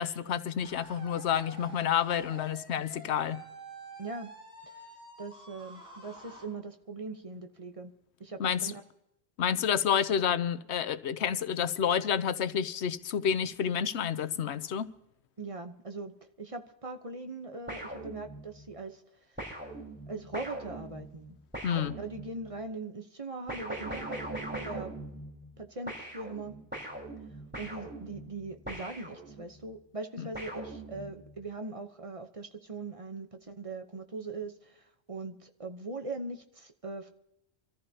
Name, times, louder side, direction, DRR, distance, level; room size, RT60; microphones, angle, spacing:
voice 1, 0.0-3.4 8.4-8.7 9.4-14.9 21.6-22.0 30.2-30.3, left 8 dB, 90° left, 1.0 m, -29 dB
sound 1, 0.6-6.4, right 2 dB, 10° left, 7.9 m, -48 dB
voice 2, 4.0-4.3 4.6-4.7 5.2-7.9 8.2-8.8 15.4-19.0 20.1-21.4 22.0-24.2 24.6-24.9 25.6-26.6 27.6-37.1, right 3 dB, 35° right, 1.0 m, -40 dB
sound 2, 17.7-18.7 19.4-22.5 23.5-25.6 25.9-29.6 30.3-31.3, right 1 dB, 10° right, 4.4 m, -41 dB
26.5 x 14.0 x 2.8 m
omnidirectional pair, 1.1 m